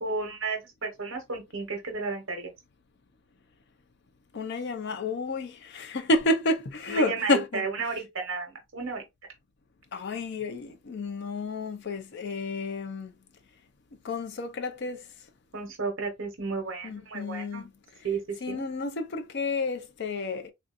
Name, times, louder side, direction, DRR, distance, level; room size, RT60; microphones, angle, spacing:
voice 1, 0.0-2.5 6.9-9.0 15.5-17.7 18.0-18.2 18.5-18.6, right 4 dB, 60° right, 1.0 m, -33 dB
voice 2, 4.3-7.6 9.9-13.1 14.0-15.0 16.8-17.7 18.4-20.5, left 2 dB, 55° left, 0.5 m, -30 dB
3.5 x 2.5 x 2.4 m
head